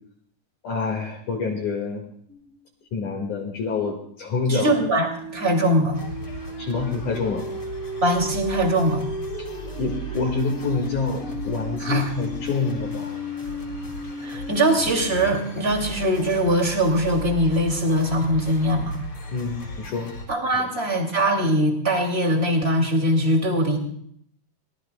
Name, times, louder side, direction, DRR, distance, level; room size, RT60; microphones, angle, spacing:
voice 1, 0.6-2.0 2.9-4.7 6.6-7.5 9.8-13.1 19.3-20.1 20.5-20.7, left 4 dB, 60° left, -1 dB, 3.3 m, -27 dB
sound 1, 2.3-2.5 4.3-15.4, equal, 80° right, 5.1 m, -35 dB
voice 2, 4.5-6.0 8.0-9.0 11.8-12.1 14.2-19.0 20.3-23.8, right 1 dB, 20° right, 2 dB, 2.3 m, -22 dB
sound 2, 5.9-20.3, equal, 35° left, 4.4 m, -37 dB
24.0 x 19.5 x 2.3 m, 0.65 s
omnidirectional pair, 4.2 m